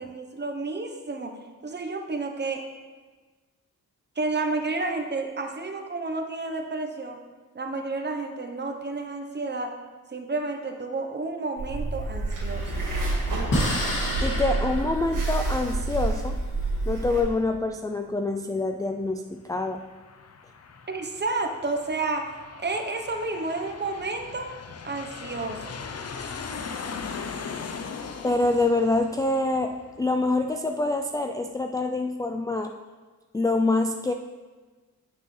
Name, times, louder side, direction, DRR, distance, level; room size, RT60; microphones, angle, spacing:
voice 1, 0.0-1.4 1.6-2.6 4.2-7.2 7.5-9.8 10.1-12.7 20.9-24.5 24.8-25.8, right 3 dB, 30° right, 4 dB, 0.9 m, -31 dB
sound 1, 11.6-17.2, right 2 dB, 70° right, 1.8 m, -28 dB
sound 2, 12.5-17.1, equal, 85° left, 2.5 m, -32 dB
voice 2, 14.2-16.4 16.9-19.8 28.2-32.7 33.3-34.1, left 2 dB, 10° left, 3 dB, 0.3 m, -26 dB
Aircraft, 19.4-30.6, left 5 dB, 50° left, 0.7 m, -39 dB
9.0 x 6.4 x 3.3 m, 1.3 s
cardioid pair, 90°, 33 cm